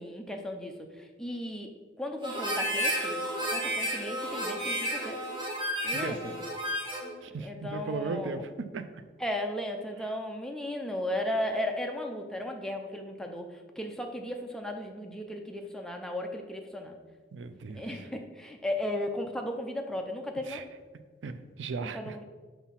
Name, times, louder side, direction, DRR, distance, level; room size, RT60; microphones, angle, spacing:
voice 1, 0.0-1.7 2.0-3.2 3.5-5.2 5.8-6.4 7.4-8.4 9.2-17.0 17.7-20.6 21.8-22.2, left 1 dB, 5° left, 3 dB, 0.5 m, -35 dB
Harmonica, 2.2-7.1, equal, 25° right, 1.1 m, -32 dB
voice 2, 5.9-6.3 7.2-8.8 17.3-17.8 20.5-20.6 21.2-22.2, right 4 dB, 80° right, 10 dB, 0.4 m, -36 dB
5.7 x 3.5 x 5.8 m, 1.4 s
head